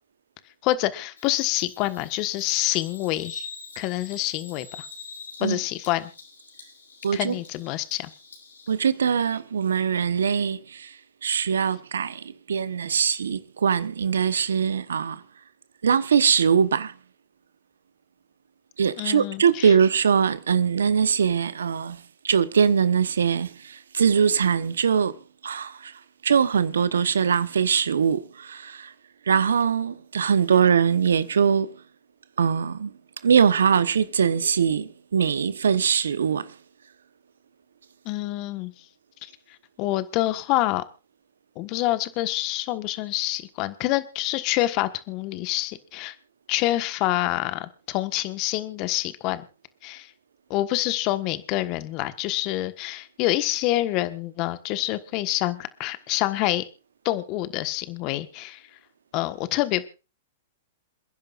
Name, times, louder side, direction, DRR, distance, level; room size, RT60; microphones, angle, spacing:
voice 1, 0.6-3.5 3.8-4.9 5.4-6.1 7.1-8.1 19.0-19.7 38.0-38.7 39.2-39.3 39.8-40.8 41.6-46.1 46.5-49.5 49.8-50.1 50.5-56.6 57.0-58.6 59.1-59.9, left 16 dB, 40° left, 1.4 m, -27 dB
Bird vocalization bird call bird song, 1.2-8.7, left 4 dB, 90° left, 5.3 m, -45 dB
voice 2, 7.0-7.3 8.7-11.0 11.2-15.2 15.8-16.9 18.8-25.9 26.2-28.9 29.3-31.8 32.4-32.9 33.2-36.5, right 7 dB, 80° right, 1.0 m, -22 dB
28.0 x 10.5 x 2.5 m
hypercardioid pair, 120°, 0 cm